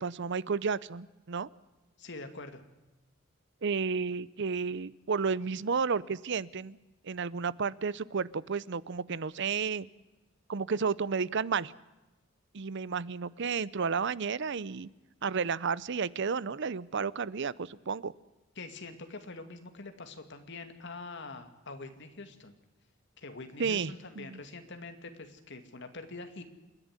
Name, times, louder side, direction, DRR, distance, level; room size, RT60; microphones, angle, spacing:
voice 1, 0.0-1.5 3.6-6.8 7.0-9.9 10.5-11.7 12.5-14.9 15.2-18.1 23.6-24.4, right 5 dB, 60° right, 20 dB, 0.6 m, -32 dB
voice 2, 2.0-2.6 18.6-22.5 23.2-26.4, left 3 dB, 60° left, 7 dB, 2.4 m, -44 dB
28.0 x 11.0 x 9.7 m, 1.1 s
head